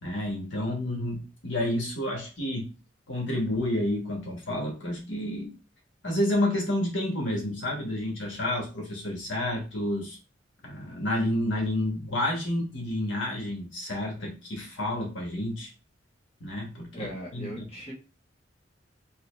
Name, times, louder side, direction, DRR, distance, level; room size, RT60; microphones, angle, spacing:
voice 1, 0.0-2.7 3.1-5.5 6.0-10.2 10.6-15.7 16.4-17.6, left 1 dB, 80° left, -1 dB, 1.5 m, -30 dB
voice 2, 16.9-17.9, equal, 30° left, -3 dB, 1.3 m, -39 dB
3.8 x 2.9 x 3.3 m, 0.32 s
head